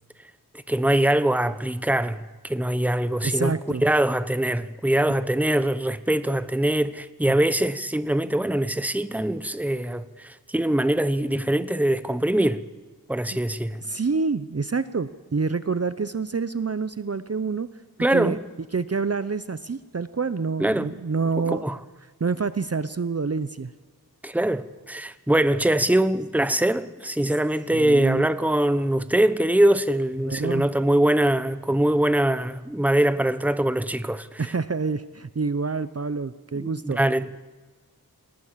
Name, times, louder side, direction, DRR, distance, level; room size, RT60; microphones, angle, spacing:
voice 1, 0.7-3.6 3.8-12.6 13.1-13.8 18.0-18.4 20.6-20.9 21.5-21.8 24.2-34.4 36.6-37.3, right 1 dB, 5° right, 1.0 m, -23 dB
voice 2, 3.2-3.8 7.3-7.4 13.3-13.4 13.8-17.7 18.1-18.4 18.7-21.7 22.2-23.7 27.7-28.3 30.2-30.7 34.4-37.0, right 4 dB, 40° right, 0.7 m, -27 dB
28.0 x 18.5 x 7.4 m
wide cardioid pair, 65°, 37 cm